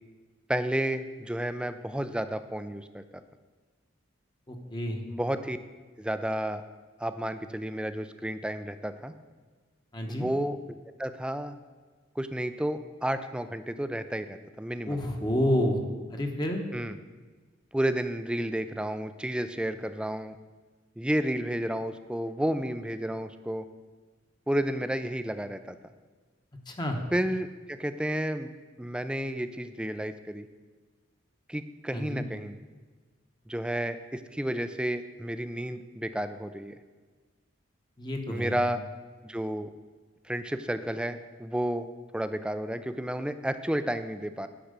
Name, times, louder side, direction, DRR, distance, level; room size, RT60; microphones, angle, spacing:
voice 1, 0.5-3.0 5.1-5.6 6.0-6.6 7.0-9.1 10.1-10.6 11.0-11.6 12.2-15.0 16.7-17.0 17.7-20.4 21.0-23.7 24.5-25.8 27.1-28.5 28.8-30.5 31.5-32.6 33.5-36.7 38.3-38.8 39.2-39.7 40.3-41.9 42.1-44.5, right 1 dB, 5° right, 10 dB, 0.4 m, -31 dB
voice 2, 4.5-5.0 9.9-10.3 14.9-15.8 16.1-16.6 26.7-27.0 31.9-32.2 38.0-38.6, left 1 dB, 20° left, 3 dB, 1.0 m, -29 dB
10.0 x 6.0 x 6.6 m, 1.4 s
head